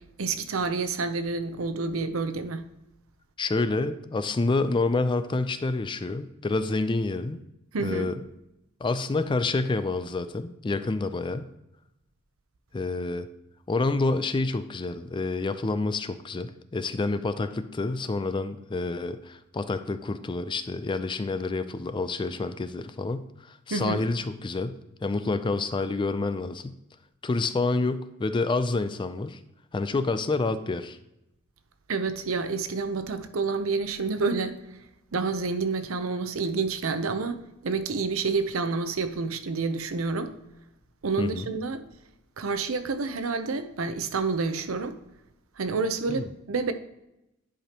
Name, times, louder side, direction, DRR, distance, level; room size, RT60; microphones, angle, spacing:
voice 1, 0.2-2.6 7.7-8.1 23.7-24.0 31.9-34.5 35.1-40.3 41.0-41.8 42.4-45.0 45.6-46.7, right 4 dB, 80° right, 0.7 m, -28 dB
voice 2, 3.4-7.4 7.8-8.2 8.8-11.5 12.7-13.3 13.7-26.8 27.2-29.4 29.7-31.0 41.2-41.5 46.1-46.2, left 3 dB, 25° left, 0.4 m, -28 dB
11.0 x 5.1 x 2.9 m
head